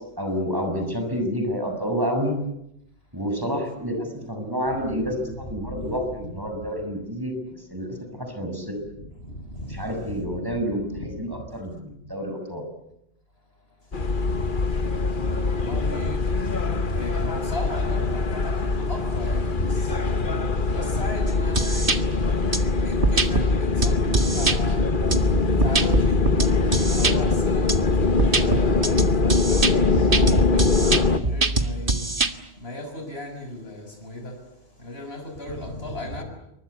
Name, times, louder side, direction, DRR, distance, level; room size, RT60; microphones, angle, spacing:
voice 1, 0.2-2.3 3.1-7.9 8.2-8.8 9.7-12.6, equal, 20° right, 4 dB, 6.7 m, -29 dB
voice 2, 9.3-9.7 14.9-16.2 16.9-24.9 25.2-26.2 26.7-32.0 32.6-34.3 34.8-36.2, left 1 dB, 65° left, 5 dB, 6.8 m, -35 dB
sound 1, 13.9-31.2, left 3 dB, 50° left, 1.6 m, -23 dB
sound 2, 21.3-22.0 22.5-22.6 23.0-23.5 23.8-24.6 25.1-27.1 27.7-27.8 28.2-32.3, right 3 dB, 55° right, 2.1 m, -23 dB
28.5 x 24.0 x 8.3 m, 0.82 s
omnidirectional pair, 1.1 m